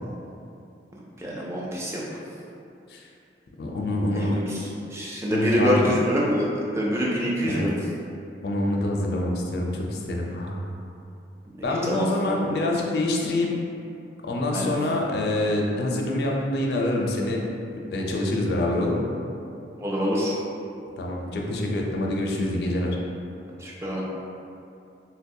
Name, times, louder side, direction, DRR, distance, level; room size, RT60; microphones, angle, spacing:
voice 1, 1.2-2.0 4.2-4.6 4.9-7.8 11.6-12.4 14.5-14.8 19.8-20.3 23.6-24.0, equal, 15° right, -5 dB, 0.4 m, -26 dB
voice 2, 3.6-4.4 5.3-5.9 7.5-7.7 8.4-10.7 11.6-13.5 14.3-17.4 17.9-19.1 21.0-23.0, left 1 dB, 60° left, -1 dB, 0.4 m, -26 dB
4.1 x 2.2 x 2.6 m, 2.6 s
head